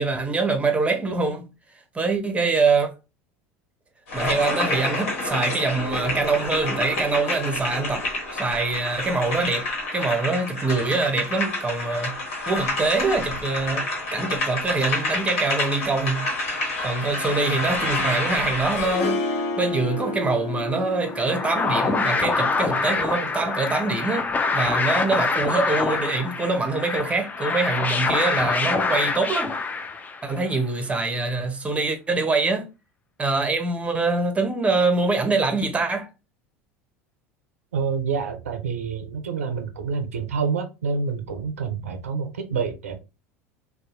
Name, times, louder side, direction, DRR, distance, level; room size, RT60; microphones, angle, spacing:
voice 1, 0.0-1.5 1.9-2.9 4.1-12.1 12.5-16.3 16.8-29.5 30.2-32.7 33.2-36.1, right 3 dB, 15° right, 0.7 m, -24 dB
sound 1, 4.1-19.1, left 2 dB, 75° left, 1.1 m, -28 dB
Harp, 18.7-23.7, left 3 dB, 60° left, 0.7 m, -31 dB
sound 2, 21.0-30.4, left 4 dB, 20° left, 0.4 m, -25 dB
voice 2, 37.7-43.0, right 5 dB, 90° right, 0.4 m, -27 dB
2.7 x 2.0 x 2.5 m
hypercardioid pair, 80°, 7 cm